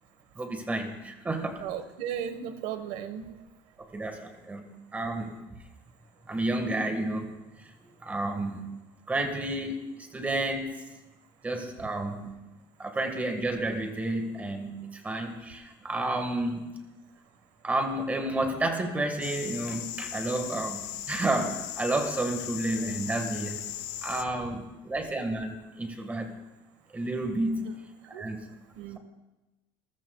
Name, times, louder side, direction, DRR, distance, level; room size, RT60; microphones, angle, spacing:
voice 1, 0.3-1.6 3.9-4.6 4.9-5.3 6.3-7.3 8.0-8.7 9.1-10.7 11.4-12.3 12.8-16.6 17.6-20.8 21.1-23.6 24.0-26.3 26.9-27.7 28.2-28.4, right 2 dB, 15° right, 5 dB, 1.7 m, -31 dB
voice 2, 1.6-3.3 27.6-27.7 28.1-28.2 28.8-29.0, right 9 dB, 80° right, 9 dB, 1.4 m, -35 dB
sound 1, 19.2-24.2, left 12 dB, 80° left, 1.1 m, -38 dB
28.5 x 14.5 x 2.4 m, 1.0 s
cardioid pair, 160°, 11 cm